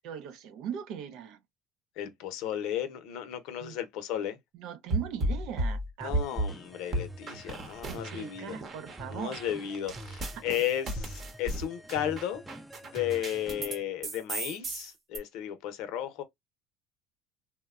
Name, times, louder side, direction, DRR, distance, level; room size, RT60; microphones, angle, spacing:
voice 1, 0.0-1.4 3.6-3.8 4.6-6.2 7.9-9.5 10.4-10.5, right 9 dB, 70° right, 0.5 m, -40 dB
voice 2, 2.0-4.4 6.0-8.6 9.1-12.4 12.8-16.2, left 11 dB, 75° left, 0.6 m, -34 dB
sound 1, 4.9-6.5 6.9-8.3 8.6-13.8 14.0-15.2, right 1 dB, 40° right, 0.8 m, -34 dB
sound 2, 6.0-13.8, right 1 dB, 5° right, 0.4 m, -47 dB
3.0 x 2.1 x 2.3 m
supercardioid pair, 105°, 0 cm